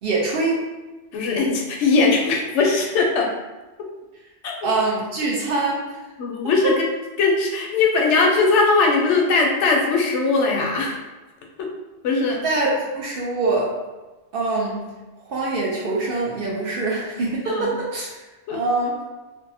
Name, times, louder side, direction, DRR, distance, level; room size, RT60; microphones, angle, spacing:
voice 1, 0.0-0.7 4.6-5.9 6.4-6.7 12.4-13.7 14.3-14.9 15.3-18.1 18.5-19.0, right 3 dB, 60° right, -3 dB, 0.7 m, -24 dB
voice 2, 1.1-3.3 4.4-4.7 6.2-6.8 7.2-11.0 11.6-11.7 12.0-12.4 17.5-17.8 18.5-18.6, left 3 dB, 75° left, 0 dB, 0.8 m, -20 dB
2.6 x 2.0 x 2.6 m, 1.2 s
omnidirectional pair, 1.2 m